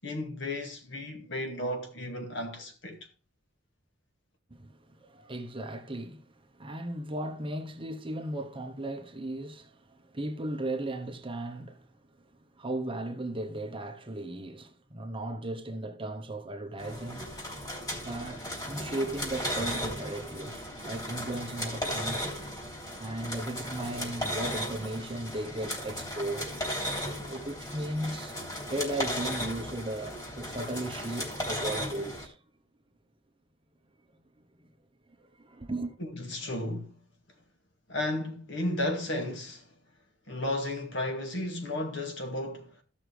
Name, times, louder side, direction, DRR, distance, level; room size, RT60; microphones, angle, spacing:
voice 1, 0.0-3.1 36.0-37.0 37.9-39.7 40.3-42.8, left 1 dB, 65° left, 2.1 m, -34 dB
voice 2, 4.5-11.9 12.2-12.3 12.5-17.4 17.9-22.3 23.0-26.5 27.2-28.4 28.7-32.4 34.4-34.5 35.2-36.0, right 1 dB, 25° right, 1.0 m, -36 dB
sound 1, 16.8-32.3, equal, 20° left, 3.3 m, -36 dB
14.5 x 6.2 x 3.3 m
head